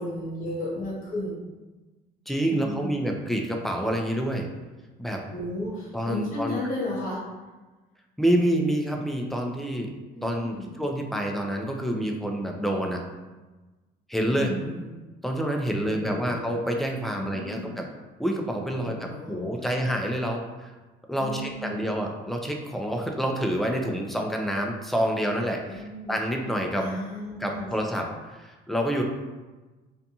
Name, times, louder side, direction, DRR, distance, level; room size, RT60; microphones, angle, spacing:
voice 1, 0.0-1.3 2.5-3.3 5.3-7.2 10.1-10.8 14.3-14.9 15.9-16.4 17.1-17.8 18.8-19.8 21.2-21.9 25.6-26.1 26.8-28.1, left 1 dB, 55° left, -6 dB, 1.1 m, -34 dB
voice 2, 2.3-4.5 5.0-5.2 5.9-6.6 8.2-9.9 10.2-13.0 14.1-14.5 15.2-17.8 18.2-20.7 21.1-26.9 27.4-29.0, equal, ahead, 2 dB, 0.3 m, -28 dB
2.5 x 2.3 x 2.7 m, 1.2 s
cardioid pair, 110°, 17 cm